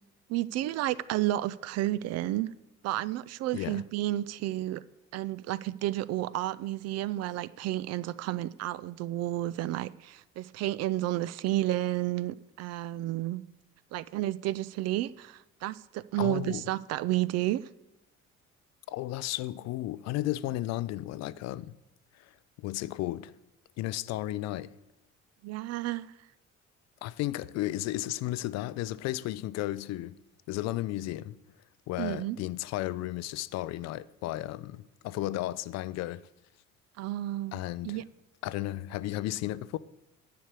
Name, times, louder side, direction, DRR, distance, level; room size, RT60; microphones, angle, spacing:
voice 1, 0.3-2.5 2.8-4.8 5.1-13.4 13.9-17.7 25.4-26.1 32.0-32.4 37.0-37.6 37.8-38.0, right 15 dB, 45° right, 0.4 m, -31 dB
voice 2, 16.2-16.7 18.9-21.7 22.1-23.3 23.8-24.7 27.0-30.2 30.5-31.4 31.9-36.2 37.5-38.0 38.4-39.8, left 15 dB, 45° left, 0.5 m, -34 dB
10.0 x 6.6 x 8.2 m
figure-of-eight pair, 50°, 38 cm